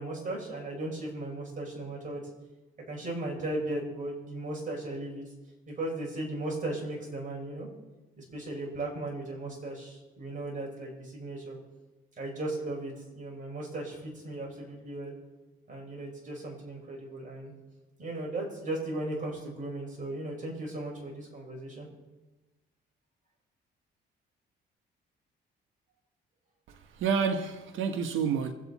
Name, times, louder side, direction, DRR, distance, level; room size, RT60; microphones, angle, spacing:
voice 1, 0.0-2.2 2.9-5.2 5.7-7.7 8.2-11.6 12.2-15.2 15.7-17.5 18.0-21.9, right 2 dB, 40° right, 5.6 m, -36 dB
voice 2, 26.7-28.5, right 6 dB, 80° right, 1.3 m, -29 dB
25.0 x 8.4 x 4.1 m
cardioid pair, 90°, 20 cm